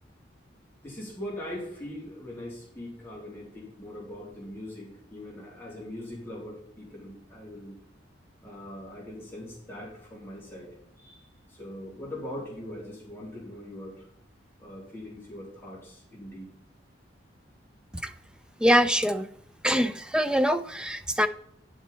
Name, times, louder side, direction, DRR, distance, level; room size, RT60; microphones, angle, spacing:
voice 1, 0.8-7.8 8.4-10.7 11.0-14.1 14.6-16.5, left 1 dB, 10° left, -5 dB, 3.1 m, -41 dB
voice 2, 18.6-19.3 19.6-21.3, equal, 5° right, 10 dB, 0.5 m, -24 dB
10.5 x 7.4 x 4.1 m, 0.69 s
head